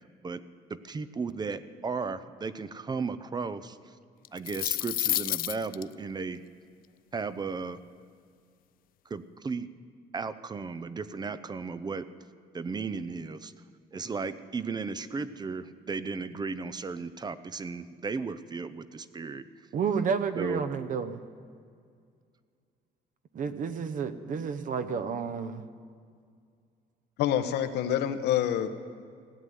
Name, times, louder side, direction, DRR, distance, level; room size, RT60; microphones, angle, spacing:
voice 1, 0.7-4.0 4.3-6.4 7.1-7.8 9.1-9.7 10.1-12.1 12.5-13.5 13.9-19.5 20.3-20.6, right 4 dB, 25° right, 14 dB, 0.6 m, -35 dB
sound 1, 4.2-5.8, left 14 dB, 60° left, 0.4 m, -29 dB
voice 2, 19.7-21.2 23.3-25.6, right 6 dB, 50° right, 10 dB, 1.0 m, -31 dB
voice 3, 27.2-28.7, left 10 dB, 80° left, 9 dB, 1.0 m, -27 dB
16.0 x 8.0 x 9.3 m, 2.2 s
cardioid pair, 110°, 17 cm